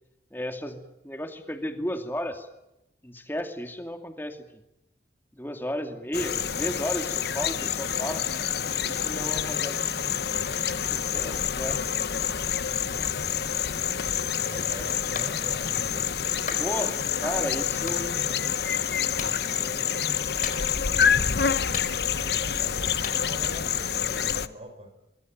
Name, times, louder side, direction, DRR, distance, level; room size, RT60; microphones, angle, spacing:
voice 1, 0.3-2.5 3.0-4.6 5.3-8.3 8.8-9.9 10.8-11.8 16.6-18.1 19.5-19.8, equal, 10° left, 6 dB, 2.5 m, -34 dB
sound 1, 6.1-24.5, left 8 dB, 65° left, 1.0 m, -27 dB
voice 2, 14.4-16.1 17.2-18.5 22.2-25.0, right 1 dB, 35° right, 7 dB, 4.4 m, -43 dB
Clapping, 15.1-15.3 16.5-16.7 17.9-18.0 19.2-19.4 20.4-20.9 21.7-22.3 23.0-23.2, left 5 dB, 45° left, 4.3 m, -35 dB
24.5 x 23.0 x 9.3 m, 0.90 s
head